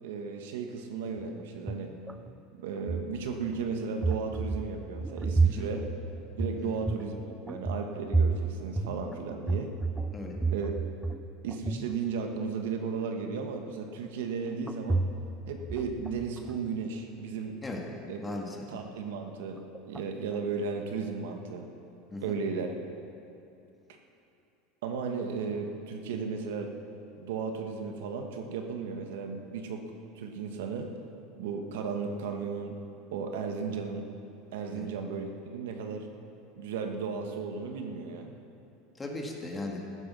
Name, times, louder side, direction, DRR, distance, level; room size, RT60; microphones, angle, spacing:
voice 1, 0.0-1.9 2.5-5.8 6.4-9.7 10.5-10.7 11.4-15.1 15.5-17.6 18.1-18.2 18.7-19.6 19.9-21.6 22.2-22.7 24.8-26.7 27.2-29.8 30.1-30.9 31.4-32.8 33.1-34.1 34.5-36.1 36.6-38.3, right 5 dB, 85° right, 4 dB, 1.5 m, -35 dB
sound 1, 1.2-2.4 2.8-3.6 4.0-11.2 11.5-12.0 14.7-15.4 15.7-16.7 19.7-20.0 20.3-20.4, right 3 dB, 5° right, 0.4 m, -31 dB
voice 2, 18.2-18.7 22.1-22.4 34.7-34.9 39.0-39.9, left 2 dB, 10° left, 0 dB, 1.7 m, -38 dB
15.0 x 9.8 x 6.2 m, 2.7 s
supercardioid pair, 150°, 0 cm